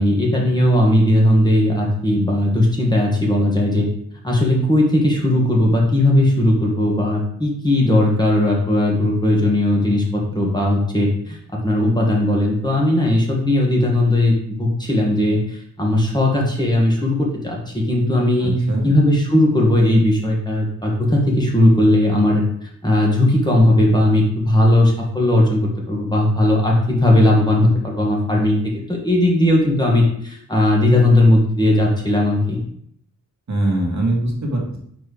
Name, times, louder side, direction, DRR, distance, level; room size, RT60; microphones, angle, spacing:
voice 1, 0.0-3.9 4.2-11.4 11.6-22.4 22.8-25.6 25.9-28.6 28.9-32.6, left 1 dB, 10° left, -3 dB, 1.6 m, -17 dB
voice 2, 18.4-18.9 33.5-34.8, right 1 dB, 50° right, 0 dB, 1.3 m, -22 dB
4.5 x 4.3 x 4.9 m, 0.67 s
wide cardioid pair, 95°, 35 cm